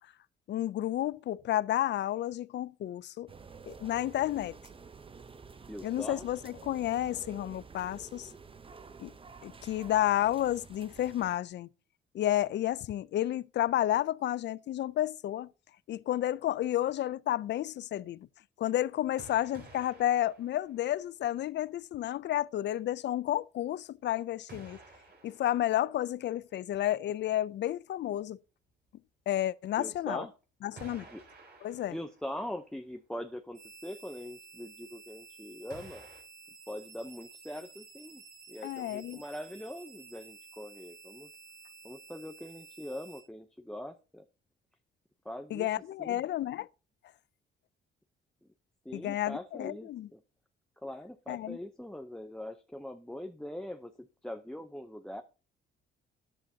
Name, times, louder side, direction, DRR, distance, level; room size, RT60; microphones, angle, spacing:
voice 1, 0.5-3.3 3.7-4.6 5.8-8.3 9.0-9.1 9.4-11.7 12.1-15.5 15.9-18.3 18.6-24.8 25.2-28.4 29.3-30.2 30.6-31.1 31.6-31.9 38.6-39.2 45.5-46.7 48.9-50.1 51.3-51.6, left 13 dB, 60° left, 0.5 m, -31 dB
sound 1, 3.3-11.4, right 5 dB, 25° right, 0.8 m, -50 dB
voice 2, 5.7-6.3 29.8-30.3 31.1-31.2 31.9-36.1 36.7-38.2 38.5-41.3 41.8-44.2 45.2-45.7 46.0-46.2 48.4-48.5 48.8-50.2 50.8-55.2, left 1 dB, 5° left, 0.7 m, -42 dB
sound 2, 19.2-21.4 21.8-21.9 24.5-26.4 29.3-29.4 30.8-32.7 33.0-33.1 35.7-36.2, right 3 dB, 55° right, 4.5 m, -53 dB
sound 3, 33.5-43.2, right 5 dB, 90° right, 7.2 m, -53 dB
13.5 x 10.0 x 2.8 m
cardioid pair, 90°, 20 cm